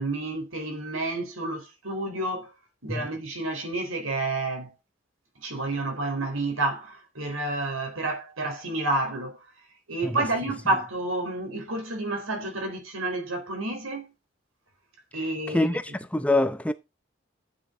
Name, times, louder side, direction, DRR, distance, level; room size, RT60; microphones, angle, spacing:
voice 1, 0.0-2.5 2.8-4.7 5.4-9.4 9.9-14.1 15.1-16.0, right 2 dB, 90° right, 4.1 m, -30 dB
voice 2, 15.5-15.8 16.1-16.7, left 2 dB, 5° left, 0.6 m, -24 dB
12.5 x 8.6 x 3.8 m
head